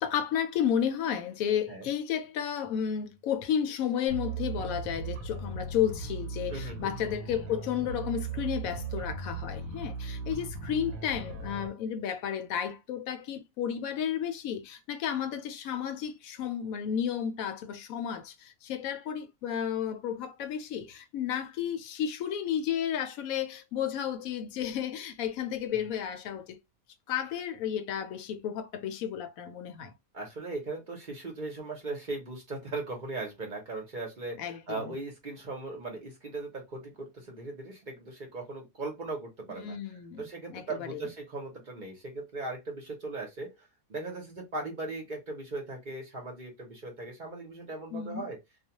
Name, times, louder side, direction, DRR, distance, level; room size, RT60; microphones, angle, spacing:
voice 1, 0.0-26.6 27.1-29.9 34.4-34.9 39.6-41.0 47.9-48.3, left 9 dB, 80° left, 1.0 m, -32 dB
sound 1, 4.1-11.7, right 4 dB, 85° right, 1.1 m, -37 dB
voice 2, 6.5-6.9 25.7-25.9 30.1-39.8 40.2-48.4, right 2 dB, 45° right, 0.7 m, -38 dB
2.4 x 2.2 x 2.8 m
omnidirectional pair, 1.5 m